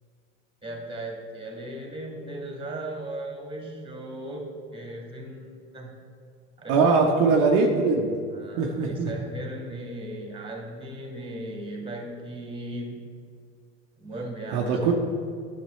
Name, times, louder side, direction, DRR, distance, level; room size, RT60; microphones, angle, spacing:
voice 1, 0.6-6.0 6.6-7.3 8.3-13.1 14.0-14.9, right 1 dB, 15° right, 0 dB, 2.0 m, -37 dB
voice 2, 6.7-8.1 8.6-9.1 14.5-14.9, right 4 dB, 55° right, 0 dB, 1.0 m, -21 dB
10.5 x 6.7 x 3.2 m, 2.2 s
hypercardioid pair, 85°, 37 cm